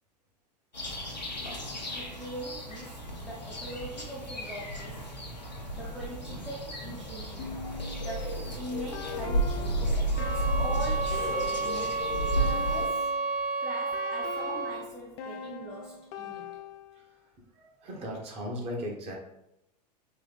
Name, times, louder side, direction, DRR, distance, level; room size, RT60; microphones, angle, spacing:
sound 1, 0.7-12.9, right 1 dB, 90° left, 0.7 m, -33 dB
voice 1, 1.9-5.2 5.7-7.7 7.9-9.8 10.2-12.1 12.4-13.2 13.6-16.7, right 1 dB, 5° right, -5 dB, 0.6 m, -42 dB
sound 2, 7.4-13.3 13.9-17.1, left 6 dB, 40° left, 0.4 m, -42 dB
sound 3, 10.1-14.9, right 4 dB, 70° right, 1.1 m, -31 dB
voice 2, 17.6-19.1, equal, 30° right, 0 dB, 1.0 m, -37 dB
3.9 x 3.0 x 3.3 m, 0.84 s
figure-of-eight pair, 90°, 21 cm